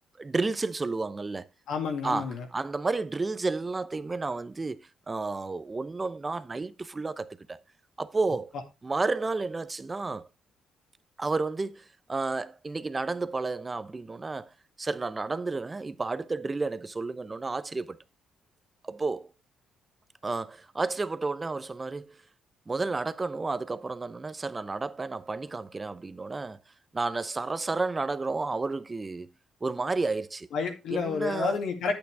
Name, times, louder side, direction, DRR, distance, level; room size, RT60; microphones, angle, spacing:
voice 1, 0.2-1.4 2.0-4.8 5.1-7.6 8.0-8.5 8.8-10.3 11.2-14.5 14.8-18.0 18.8-19.3 20.2-22.2 22.7-26.6 26.9-29.3 29.6-30.5 30.9-31.6, right 3 dB, 25° right, 0.7 m, -31 dB
voice 2, 1.7-2.5 30.5-31.9, left 5 dB, 75° left, 2.3 m, -30 dB
9.4 x 8.3 x 3.4 m
cardioid pair, 90°, 0 cm